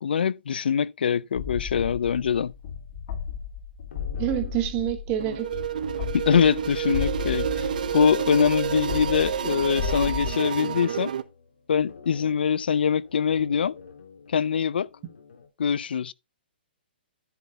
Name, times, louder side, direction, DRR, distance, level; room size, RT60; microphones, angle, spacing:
voice 1, 0.0-2.5 6.1-7.7 7.9-11.1 11.7-13.7 14.3-14.9 15.6-16.1, left 7 dB, 65° left, 0.4 m, -23 dB
sound 1, 1.4-10.3, left 7 dB, 30° left, 1.5 m, -34 dB
sound 2, 3.9-6.4 7.2-8.2 8.9-15.5, left 5 dB, 85° left, 3.2 m, -48 dB
voice 2, 4.2-5.6, right 12 dB, 15° right, 1.0 m, -27 dB
sound 3, 5.2-11.2, right 8 dB, 50° right, 0.8 m, -29 dB
10.5 x 4.0 x 5.6 m
hypercardioid pair, 175°, 6 cm